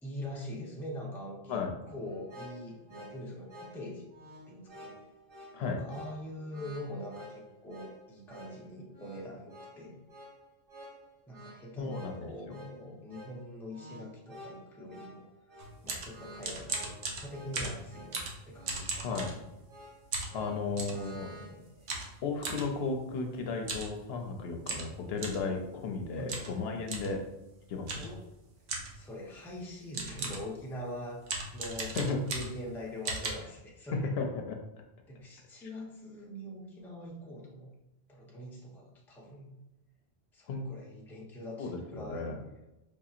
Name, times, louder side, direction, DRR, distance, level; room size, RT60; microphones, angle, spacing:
voice 1, 0.0-4.1 4.5-5.0 5.6-10.0 11.3-15.5 15.8-18.2 18.5-19.1 20.3-21.9 26.1-26.7 28.0-28.2 28.9-34.1 35.1-37.7 38.1-39.6 40.3-42.3, left 1 dB, 5° left, -3 dB, 0.5 m, -43 dB
sound 1, 2.1-21.5, equal, 55° right, 1.3 m, -51 dB
voice 2, 11.8-12.6 19.0-19.4 20.3-21.3 22.2-27.2 27.7-28.0 32.0-32.2 33.9-34.6 40.5-40.7 41.6-42.4, left 4 dB, 70° left, 3 dB, 0.8 m, -34 dB
sound 2, 15.6-19.8 20.1-21.0 21.9-22.7 23.6-23.9 24.2-24.3 24.6-25.5 26.3-26.6 26.9-27.1 27.9-28.2 28.7-29.0 29.6-29.7 29.9-30.5 31.2-32.7 33.0-33.3, right 3 dB, 90° right, 1.0 m, -37 dB
5.0 x 2.8 x 2.4 m, 0.96 s
omnidirectional pair, 1.1 m